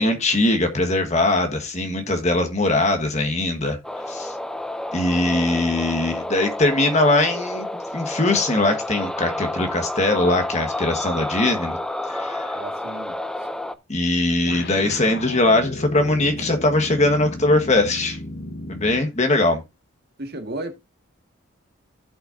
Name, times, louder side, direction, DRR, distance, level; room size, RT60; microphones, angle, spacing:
voice 1, 0.0-3.8 4.1-4.3 4.9-7.7 7.9-11.8 12.1-12.5 13.9-18.2 18.7-19.6, left 2 dB, 35° left, 1.6 m, -21 dB
sound 1, 3.8-13.7, left 1 dB, 5° left, 0.5 m, -30 dB
voice 2, 5.3-6.0 12.5-13.5 16.4-16.5 20.2-20.7, right 2 dB, 50° right, 1.8 m, -36 dB
sound 2, 14.5-19.2, left 1 dB, 55° left, 1.3 m, -35 dB
15.5 x 5.8 x 2.7 m
head